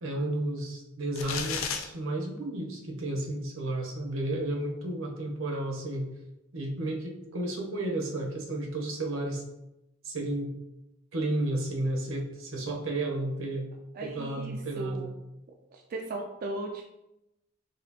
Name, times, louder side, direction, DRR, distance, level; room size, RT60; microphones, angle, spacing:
voice 1, 0.0-6.1 6.5-9.4 10.0-10.5 11.1-13.7 14.0-15.1, right 1 dB, 80° right, 1 dB, 0.8 m, -32 dB
sound 1, 1.2-1.8, left 6 dB, 90° left, 0.5 m, -32 dB
voice 2, 13.9-15.1 15.7-16.8, right 2 dB, 45° right, 1 dB, 0.3 m, -37 dB
4.2 x 3.2 x 2.7 m, 0.91 s
head